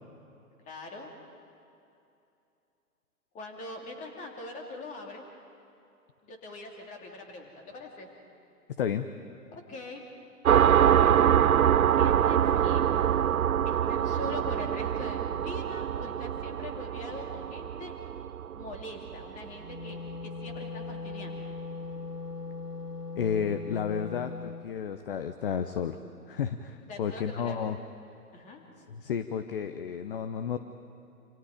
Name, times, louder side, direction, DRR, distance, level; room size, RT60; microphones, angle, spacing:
voice 1, 0.6-1.1 3.3-5.2 6.2-8.1 9.5-10.0 10.5-11.1 11.9-13.0 13.6-17.9 18.5-21.5 26.9-27.7 28.3-28.6, left 2 dB, 15° left, 2 dB, 2.9 m, -43 dB
sound 1, 10.5-19.7, right 9 dB, 65° right, 0.5 m, -25 dB
Wind instrument woodwind instrument, 19.5-24.7, left 3 dB, 85° left, 1.7 m, -39 dB
voice 2, 23.1-26.0 26.3-27.8 28.9-30.6, left 7 dB, 35° left, 9 dB, 0.9 m, -32 dB
28.0 x 27.5 x 5.2 m, 2.7 s
figure-of-eight pair, 125°, 46 cm